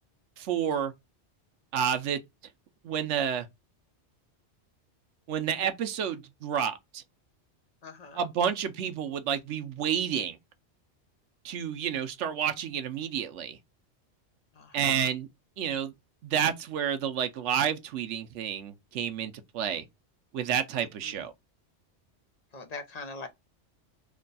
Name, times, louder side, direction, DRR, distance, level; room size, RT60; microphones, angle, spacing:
voice 1, 0.4-0.9 1.7-2.2 2.8-3.5 5.3-7.0 8.2-10.4 11.4-13.6 14.7-15.3 15.6-15.9 16.2-19.8 20.3-21.3, right 8 dB, 90° right, 1.0 m, -30 dB
voice 2, 7.8-8.3 14.5-15.1 20.8-21.3 22.5-23.3, left 3 dB, 40° left, 0.7 m, -43 dB
3.3 x 2.2 x 3.8 m
omnidirectional pair, 1.2 m